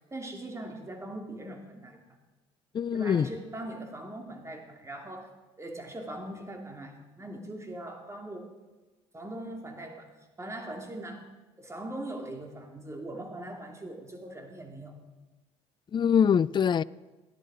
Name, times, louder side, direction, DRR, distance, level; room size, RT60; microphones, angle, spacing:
voice 1, 0.1-2.0 2.9-5.3 5.6-8.6 9.1-11.3 11.6-15.0, right 1 dB, 20° right, 3.0 m, -41 dB
voice 2, 2.7-3.3 15.9-16.8, left 7 dB, 35° left, 0.4 m, -23 dB
16.5 x 11.0 x 5.1 m
hypercardioid pair, 65°, 14 cm